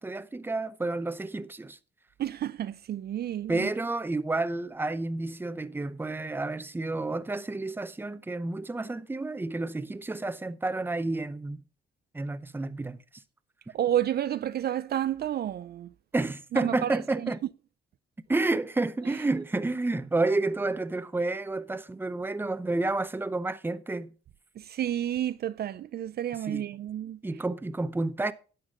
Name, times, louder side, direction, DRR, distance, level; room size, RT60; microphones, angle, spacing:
voice 1, 0.0-1.8 3.5-11.6 12.1-13.0 16.1-17.4 18.3-24.1 26.5-26.6 27.2-28.3, right 2 dB, 10° right, 0.7 m, -30 dB
voice 2, 2.2-3.7 13.7-15.9 16.5-17.3 24.6-27.2, right 11 dB, 55° right, 0.5 m, -30 dB
11.0 x 7.9 x 3.6 m
cardioid pair, 90°, 20 cm